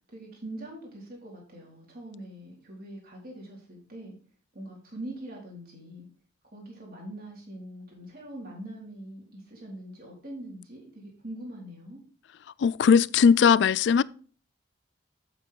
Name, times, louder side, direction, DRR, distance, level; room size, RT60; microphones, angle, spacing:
voice 1, 0.1-4.1 4.5-6.1 6.5-12.0, right 1 dB, 50° right, 4.2 m, -43 dB
voice 2, 12.6-14.0, left 6 dB, 65° left, 0.3 m, -19 dB
8.3 x 8.1 x 3.7 m
head